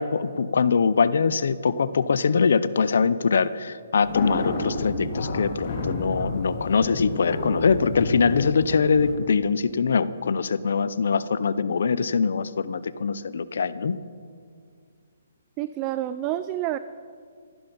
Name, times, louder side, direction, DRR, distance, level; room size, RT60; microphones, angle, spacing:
voice 1, 0.0-14.0, left 5 dB, 70° left, 16 dB, 0.6 m, -23 dB
sound 1, 4.0-9.1, left 2 dB, 40° left, 2.2 m, -31 dB
voice 2, 15.6-16.8, right 13 dB, 20° right, 13 dB, 0.3 m, -28 dB
15.0 x 11.5 x 5.4 m, 2.2 s
hypercardioid pair, 165°, 0 cm